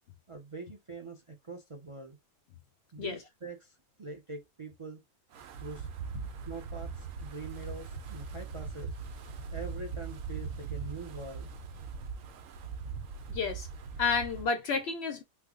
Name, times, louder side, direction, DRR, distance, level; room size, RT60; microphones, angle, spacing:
voice 1, 0.3-2.2 2.9-5.0 5.6-5.9 6.5-8.9 9.5-11.5, right 3 dB, 55° right, 0.3 m, -44 dB
Wind, 5.3-14.5, right 5 dB, 70° right, 1.0 m, -40 dB
voice 2, 13.3-13.7 14.0-15.2, left 5 dB, 65° left, 0.6 m, -30 dB
3.3 x 2.1 x 3.5 m
omnidirectional pair, 1.5 m